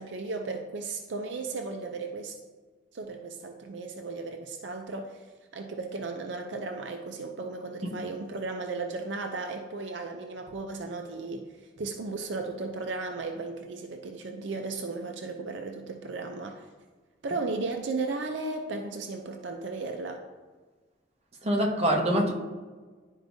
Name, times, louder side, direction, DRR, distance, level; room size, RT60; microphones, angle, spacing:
voice 1, 0.0-2.3 2.9-5.2 5.5-16.6 17.2-20.2, right 3 dB, 70° right, 4 dB, 0.5 m, -35 dB
voice 2, 21.4-22.3, equal, 35° right, 0 dB, 0.9 m, -25 dB
11.0 x 4.5 x 2.7 m, 1.4 s
head